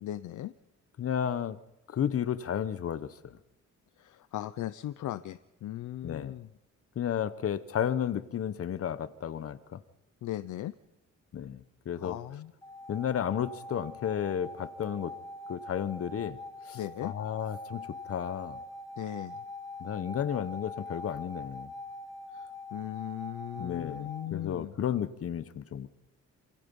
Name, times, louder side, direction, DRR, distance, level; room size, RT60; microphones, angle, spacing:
voice 1, 0.0-0.5 4.0-6.5 10.2-10.7 12.0-12.5 16.7-17.1 19.0-19.4 22.3-24.7, left 13 dB, 85° left, 13 dB, 0.8 m, -38 dB
voice 2, 1.0-1.6 1.9-3.4 6.0-6.3 7.0-9.8 11.3-12.2 12.9-15.1 15.5-16.4 16.6-18.6 19.8-21.7 23.6-25.9, left 9 dB, 50° left, 14 dB, 1.0 m, -33 dB
sound 1, 12.6-24.3, left 2 dB, 10° left, 2.2 m, -43 dB
27.0 x 26.5 x 5.4 m, 0.93 s
wide cardioid pair, 155°, 30 cm